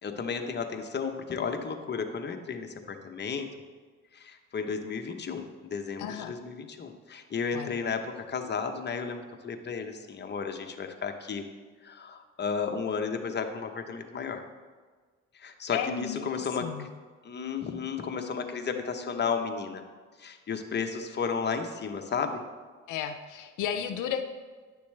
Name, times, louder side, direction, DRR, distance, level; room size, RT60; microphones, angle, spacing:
voice 1, 0.0-3.5 4.1-11.4 11.8-14.4 15.3-16.9 17.2-19.8 20.2-22.4, left 5 dB, 35° left, 5 dB, 0.9 m, -33 dB
voice 2, 6.0-6.3 7.5-7.7 15.7-16.9 22.9-24.2, left 9 dB, 85° left, 7 dB, 0.6 m, -33 dB
9.7 x 6.8 x 3.3 m, 1.4 s
cardioid pair, 90°, 30 cm